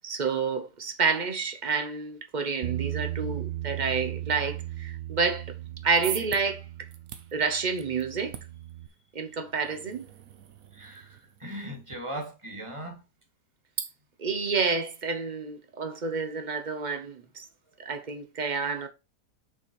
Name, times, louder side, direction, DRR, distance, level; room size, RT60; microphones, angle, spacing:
voice 1, 0.0-5.5 5.8-6.6 7.3-8.3 9.1-10.1 13.8-13.9 14.2-17.5 17.8-18.9, right 5 dB, 40° right, 0.6 m, -29 dB
Bass guitar, 2.6-8.9, right 14 dB, 85° right, 0.5 m, -37 dB
sound 1, 5.6-12.0, right 8 dB, 60° right, 1.1 m, -44 dB
voice 2, 10.7-13.0 16.9-17.0, right 1 dB, 20° right, 1.7 m, -39 dB
6.2 x 4.2 x 4.6 m
omnidirectional pair, 1.8 m